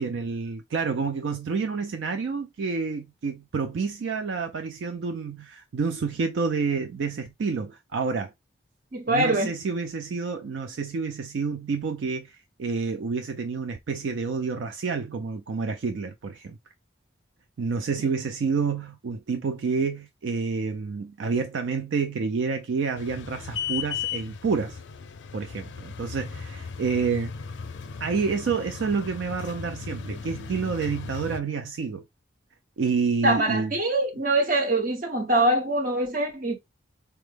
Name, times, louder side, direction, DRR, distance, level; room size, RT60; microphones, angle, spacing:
voice 1, 0.0-8.3 9.1-16.6 17.6-24.8 25.3-27.3 28.0-32.0 32.8-33.7, right 5 dB, 70° right, 0.4 m, -29 dB
voice 2, 8.9-9.5 33.2-36.6, right 1 dB, 45° right, 0.9 m, -23 dB
sound 1, 23.0-31.4, left 6 dB, 65° left, 0.4 m, -36 dB
4.4 x 2.1 x 3.1 m
head